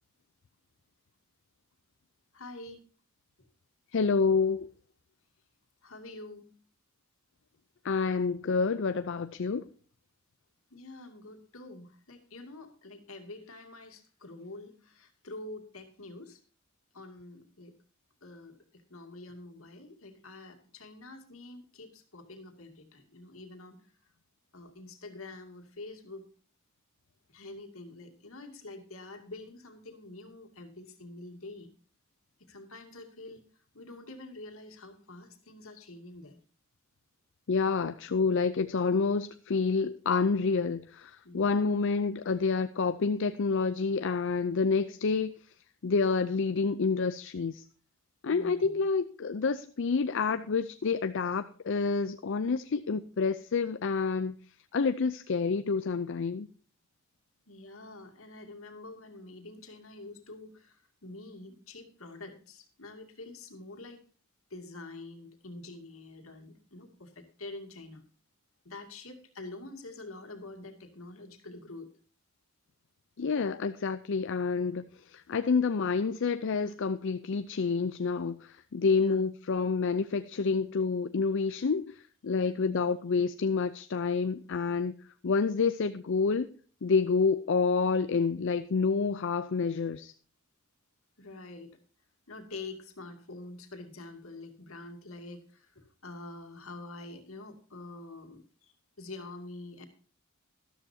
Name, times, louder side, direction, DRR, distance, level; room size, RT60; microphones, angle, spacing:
voice 1, 2.3-2.8 5.8-6.5 10.7-16.4 16.9-17.7 18.2-18.6 18.9-23.8 24.5-26.2 27.3-31.7 32.5-33.4 33.7-36.4 41.2-41.5 48.3-48.7 57.5-64.0 64.5-68.0 68.6-71.9 79.0-79.2 82.4-82.8 91.2-91.7 92.3-98.4 99.0-99.9, left 2 dB, 85° left, 2.4 m, -46 dB
voice 2, 3.9-4.7 7.8-9.7 37.5-45.3 45.8-47.6 48.2-54.4 54.7-56.5 73.2-82.0 82.2-84.9 85.2-86.5 86.8-90.1, left 4 dB, 65° left, 0.5 m, -28 dB
13.5 x 12.5 x 2.8 m
head